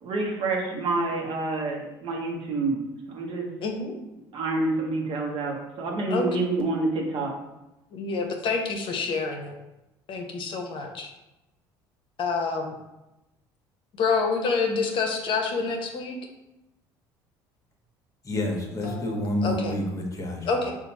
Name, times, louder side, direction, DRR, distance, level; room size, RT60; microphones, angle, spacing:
voice 1, 0.0-2.8 3.1-3.5 4.3-7.3, right 2 dB, 55° right, 0 dB, 1.0 m, -28 dB
voice 2, 3.6-3.9 6.1-6.3 7.9-9.5 10.1-11.1 12.2-12.7 14.0-16.1 18.8-19.7 20.5-20.7, left 4 dB, 55° left, 2 dB, 0.8 m, -27 dB
voice 3, 18.2-20.6, left 1 dB, 30° left, 2 dB, 1.0 m, -29 dB
4.3 x 2.4 x 4.1 m, 0.96 s
supercardioid pair, 75°, 11 cm